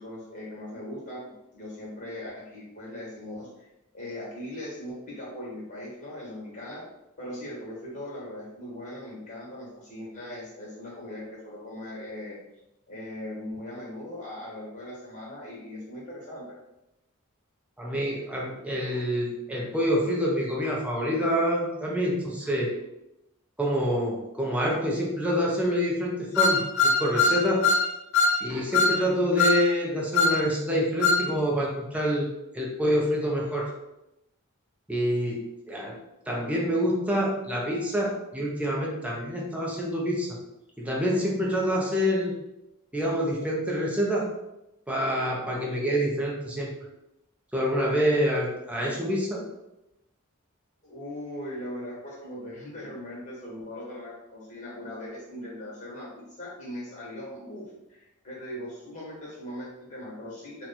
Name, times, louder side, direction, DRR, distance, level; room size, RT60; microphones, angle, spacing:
voice 1, 0.0-3.5 3.9-6.8 7.2-12.4 12.9-16.6 50.8-60.7, left 1 dB, 35° left, -5 dB, 1.3 m, -39 dB
voice 2, 17.8-22.7 23.6-27.7 28.4-33.7 34.9-36.0 36.3-40.4 40.8-42.3 42.9-44.3 44.9-46.7 47.5-49.5, equal, 5° right, -3 dB, 0.5 m, -27 dB
sound 1, 26.4-27.9 28.1-28.4 28.7-29.0 29.4-29.6 30.1-30.4 31.0-31.2, left 3 dB, 60° left, 0.3 m, -21 dB
3.0 x 2.2 x 4.1 m, 0.89 s
head